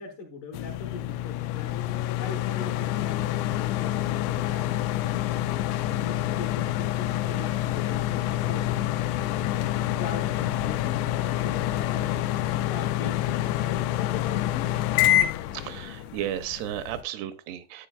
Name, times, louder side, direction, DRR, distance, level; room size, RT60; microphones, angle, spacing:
voice 1, 0.0-5.1 5.7-9.6 10.0-14.9, left 4 dB, 65° left, 2.1 m, -42 dB
sound 1, 0.5-17.0, left 13 dB, 85° left, 2.7 m, -27 dB
voice 2, 15.5-17.9, right 11 dB, 80° right, 2.6 m, -34 dB
11.5 x 8.5 x 2.3 m
omnidirectional pair, 4.8 m